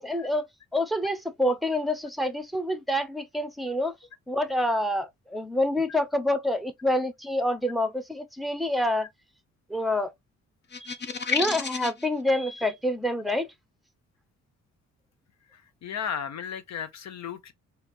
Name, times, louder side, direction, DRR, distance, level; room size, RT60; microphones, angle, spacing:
voice 1, 0.0-3.9 4.3-9.1 9.7-10.1 10.8-11.0 11.3-13.5, left 1 dB, ahead, 0.8 m, -27 dB
sound 1, 10.7-12.1, left 5 dB, 35° left, 0.8 m, -30 dB
voice 2, 15.5-17.5, left 7 dB, 60° left, 1.0 m, -35 dB
4.2 x 2.8 x 3.1 m
cardioid pair, 90°, 30 cm